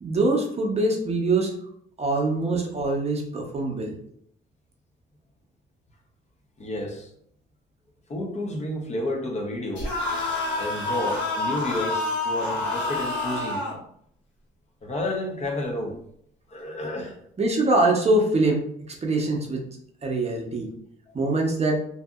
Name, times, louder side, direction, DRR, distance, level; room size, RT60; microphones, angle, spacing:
voice 1, 0.0-1.5 2.0-3.9 17.4-19.6 20.0-20.7 21.1-21.8, right 2 dB, 30° right, 0 dB, 0.7 m, -23 dB
voice 2, 6.6-7.1 8.1-9.9 10.5-13.7 14.8-16.0 16.5-17.2 21.2-21.3, left 1 dB, 35° left, 1 dB, 0.6 m, -31 dB
sound 1, 9.8-13.8, left 2 dB, 70° left, 1.3 m, -28 dB
2.7 x 2.5 x 2.3 m, 0.67 s
cardioid pair, 90°, 20 cm